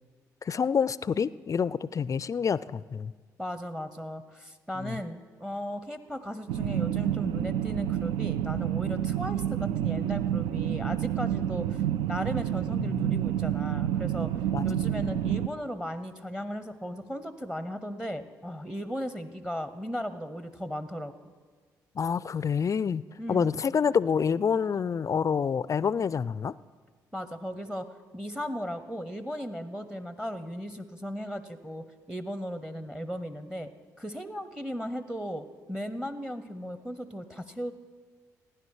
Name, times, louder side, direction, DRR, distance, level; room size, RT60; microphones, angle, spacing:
voice 1, 0.4-3.1 4.8-5.0 12.8-13.2 14.5-14.9 22.0-26.5, left 6 dB, 40° left, 18 dB, 0.4 m, -28 dB
voice 2, 3.4-11.8 12.1-14.3 14.6-21.1 23.2-23.6 27.1-27.9 28.1-33.7 34.0-37.7, equal, 5° right, 12 dB, 0.8 m, -36 dB
sound 1, 6.5-15.5, right 11 dB, 75° right, 0.4 m, -29 dB
16.0 x 10.0 x 4.8 m, 1.5 s
hypercardioid pair, 50°, 9 cm